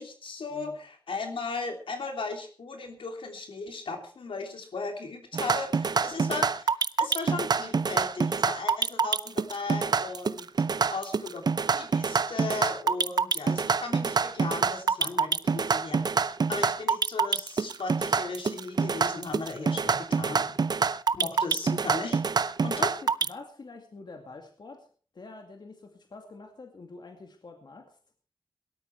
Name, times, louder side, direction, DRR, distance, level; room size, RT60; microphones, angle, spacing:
voice 1, 0.0-10.5 10.9-20.6 21.1-23.0, left 3 dB, 80° left, 4 dB, 3.2 m, -37 dB
sound 1, 5.3-23.3, right 5 dB, 50° right, 0.6 m, -26 dB
voice 2, 22.7-24.9 25.1-28.0, left 3 dB, 55° left, 4 dB, 2.3 m, -46 dB
18.0 x 12.5 x 4.6 m, 0.42 s
wide cardioid pair, 80°, 9 cm